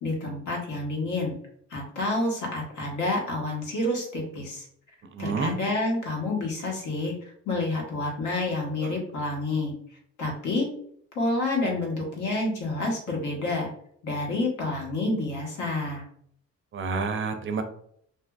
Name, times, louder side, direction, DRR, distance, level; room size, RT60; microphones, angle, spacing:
voice 1, 0.0-1.3 1.7-4.7 5.2-7.1 7.5-9.7 10.2-10.7 11.1-13.7 14.0-16.0, left 2 dB, 80° left, -1 dB, 1.1 m, -28 dB
voice 2, 5.1-5.6 8.8-9.0 16.7-17.6, right 4 dB, 40° right, 7 dB, 0.5 m, -29 dB
2.8 x 2.6 x 2.2 m, 0.66 s
cardioid pair, 90°, 30 cm